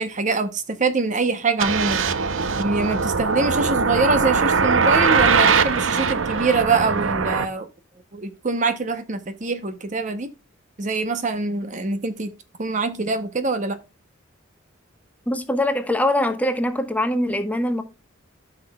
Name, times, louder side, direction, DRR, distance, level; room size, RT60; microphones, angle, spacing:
voice 1, 0.0-2.0 2.6-7.7 8.1-10.3 10.8-12.3 12.6-13.8, right 3 dB, 40° right, 0.7 m, -24 dB
sound 1, 1.6-7.5, right 5 dB, 75° right, 0.7 m, -21 dB
voice 2, 15.3-17.8, left 1 dB, 10° left, 1.0 m, -22 dB
13.5 x 5.9 x 2.2 m
head